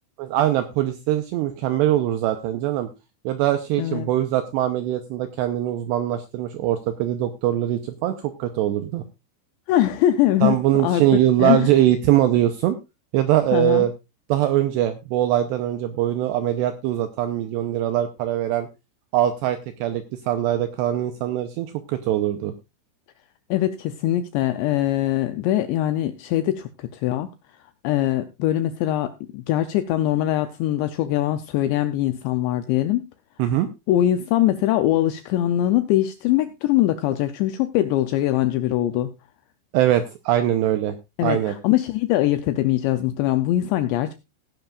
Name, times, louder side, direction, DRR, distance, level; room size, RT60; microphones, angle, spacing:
voice 1, 0.2-2.9 3.3-9.0 10.4-12.8 13.1-13.9 14.3-18.7 19.1-22.5 33.4-33.7 39.7-41.0 41.2-41.5, right 12 dB, 90° right, 8 dB, 2.5 m, -22 dB
voice 2, 3.8-4.1 9.7-11.0 11.4-11.7 13.5-13.9 23.5-27.3 27.8-33.1 33.9-39.1 41.2-44.1, left 13 dB, 85° left, 10 dB, 2.5 m, -22 dB
17.0 x 10.5 x 2.4 m, 0.25 s
omnidirectional pair, 5.8 m